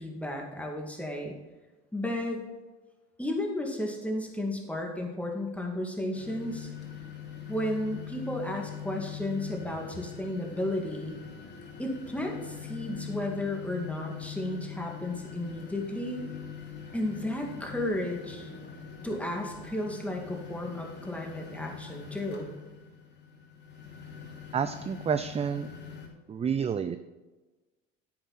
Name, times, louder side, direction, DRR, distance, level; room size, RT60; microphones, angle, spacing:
voice 1, 0.0-1.3 1.9-2.4 3.2-6.7 7.5-11.1 11.8-16.3 16.9-18.5 19.0-22.5, left 1 dB, 5° left, 0 dB, 2.5 m, -33 dB
sound 1, 6.1-26.1, left 8 dB, 30° left, 2.9 m, -43 dB
voice 2, 24.5-25.7 26.3-27.0, right 7 dB, 20° right, 11 dB, 0.4 m, -29 dB
10.5 x 8.0 x 4.3 m, 1.2 s
hypercardioid pair, 80°, 35 cm